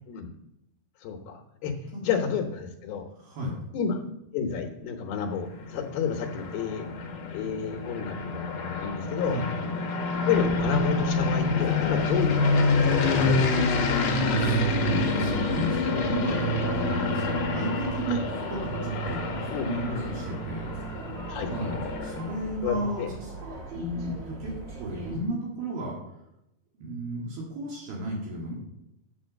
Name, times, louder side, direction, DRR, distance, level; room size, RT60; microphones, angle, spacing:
voice 1, 1.0-1.7 2.0-3.1 3.7-4.0 4.3-6.9 7.3-9.4 10.3-14.1 18.1-18.2 19.5-19.7 21.3-21.5 22.6-23.1, left 7 dB, 75° left, 3 dB, 2.8 m, -30 dB
voice 2, 3.1-3.5 9.3-9.5 14.3-18.2 18.5-20.7 21.4-23.4 23.7-24.5 24.8-26.0 26.8-28.5, right 1 dB, 65° right, -3 dB, 3.8 m, -33 dB
sound 1, 5.3-22.5, left 3 dB, 60° left, 2.0 m, -27 dB
sound 2, 10.3-25.2, right 2 dB, 35° right, 2.4 m, -40 dB
10.0 x 8.0 x 6.4 m, 0.86 s
omnidirectional pair, 4.7 m